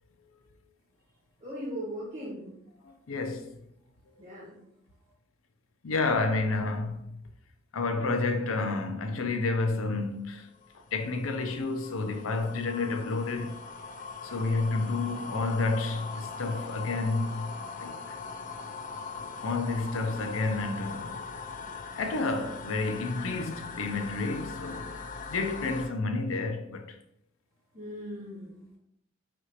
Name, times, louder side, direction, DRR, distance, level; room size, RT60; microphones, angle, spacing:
voice 1, 1.4-2.6 4.2-4.6 27.7-28.8, equal, 40° right, 1.4 m, -39 dB
voice 2, 2.8-3.5 5.8-7.2 7.7-10.5 10.9-13.6 14.2-17.5 17.8-18.2 19.4-21.2 22.0-27.0, left 3 dB, 80° left, 0.6 m, -30 dB
sound 1, 10.3-25.9, left 4 dB, 40° left, 0.3 m, -41 dB
5.9 x 2.5 x 2.9 m
head